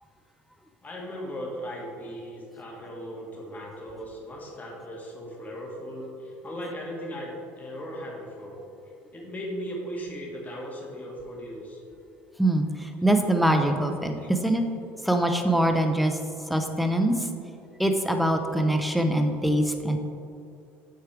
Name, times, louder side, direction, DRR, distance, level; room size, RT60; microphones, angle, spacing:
voice 1, 0.8-8.6 9.1-11.8 14.2-14.3, equal, 25° left, -2 dB, 1.6 m, -37 dB
voice 2, 12.4-14.6 15.0-16.2 16.5-17.3 17.8-20.0, right 1 dB, ahead, 5 dB, 0.7 m, -23 dB
8.1 x 4.5 x 3.4 m, 2.5 s
supercardioid pair, 75°, 6 cm